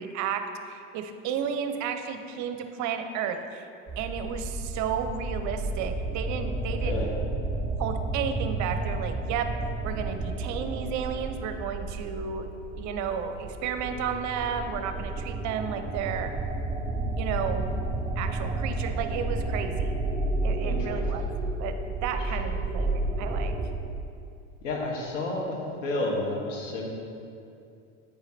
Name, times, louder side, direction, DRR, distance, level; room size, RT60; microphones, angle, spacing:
voice 1, 0.0-3.7 4.0-7.1 7.8-9.5 9.8-12.5 12.8-16.3 17.2-17.7 18.2-19.9 20.4-21.3 21.6-21.7 22.0-23.5, right 7 dB, 50° right, 7 dB, 0.7 m, -32 dB
sound 1, 3.9-23.7, right 2 dB, 5° right, 0.7 m, -31 dB
voice 2, 6.8-7.1 20.6-21.3 22.1-22.2 24.6-26.9, left 2 dB, 90° left, 0 dB, 1.4 m, -31 dB
8.5 x 4.9 x 4.2 m, 2.5 s
hypercardioid pair, 95°, 37 cm